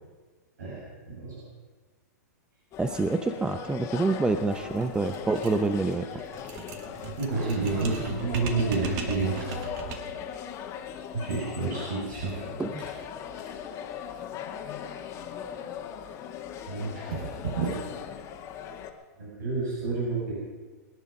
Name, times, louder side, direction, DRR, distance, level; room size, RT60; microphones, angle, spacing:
voice 1, 0.6-1.4 6.8-6.9 7.1-9.6 11.1-12.4 16.7-17.7 19.2-20.4, right 3 dB, 80° right, -6 dB, 6.8 m, -30 dB
sound 1, 2.7-18.9, left 8 dB, 30° left, 1.9 m, -39 dB
voice 2, 2.8-6.1 12.6-12.7, right 3 dB, 10° right, 9 dB, 0.7 m, -27 dB
sound 2, 4.5-10.2, right 6 dB, 45° right, 2.2 m, -39 dB
24.5 x 10.5 x 5.4 m, 1.3 s
hypercardioid pair, 130°, 9 cm